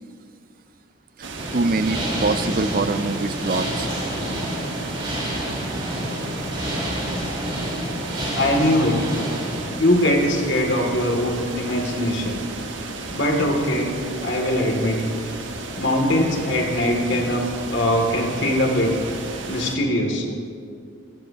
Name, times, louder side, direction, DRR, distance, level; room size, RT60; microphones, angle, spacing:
sound 1, 1.2-19.8, right 3 dB, 65° right, 1.5 m, -34 dB
sound 2, 1.4-9.6, equal, 25° right, 4.2 m, -28 dB
voice 1, 1.5-3.9, right 3 dB, 45° right, 12 dB, 0.4 m, -24 dB
voice 2, 8.3-9.0 9.8-12.4 13.1-13.9 14.2-15.0 15.8-19.0 19.5-20.3, left 1 dB, 60° left, 1 dB, 2.7 m, -21 dB
26.0 x 15.0 x 3.0 m, 2.4 s
head